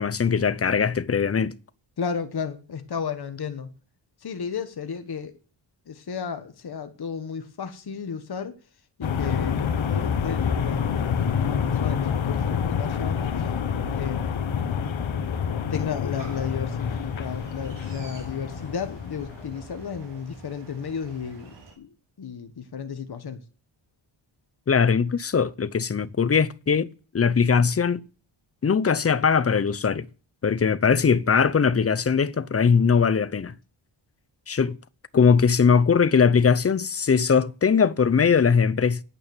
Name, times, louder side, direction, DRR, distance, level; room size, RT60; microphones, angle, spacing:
voice 1, 0.0-1.6 24.7-26.9 27.1-28.0 28.6-30.1 30.4-33.5 34.5-34.8 35.1-39.0, left 6 dB, 30° left, 0.6 m, -20 dB
voice 2, 2.0-3.7 4.2-5.4 5.9-8.5 9.0-13.5 13.9-14.5 15.7-21.9 22.2-23.4, left 6 dB, 50° left, 1.5 m, -33 dB
sound 1, 9.0-19.9, left 7 dB, 70° left, 1.5 m, -27 dB
sound 2, 16.2-21.8, right 3 dB, 60° right, 5.1 m, -47 dB
9.5 x 8.5 x 7.1 m
wide cardioid pair, 125°, 49 cm